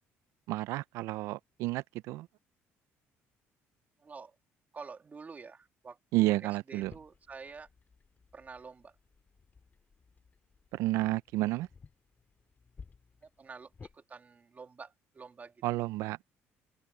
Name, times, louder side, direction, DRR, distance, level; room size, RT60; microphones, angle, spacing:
voice 1, 0.5-2.3 6.1-6.9 10.7-11.7 15.6-16.2, right 18 dB, 80° right, 0.5 m, -31 dB
voice 2, 4.0-4.4 4.7-7.7 8.3-9.0 13.2-15.6, right 5 dB, 30° right, 2.6 m, -48 dB
sound 1, 6.8-14.0, left 5 dB, 35° left, 2.4 m, -57 dB
open air
supercardioid pair, 85°, 5 cm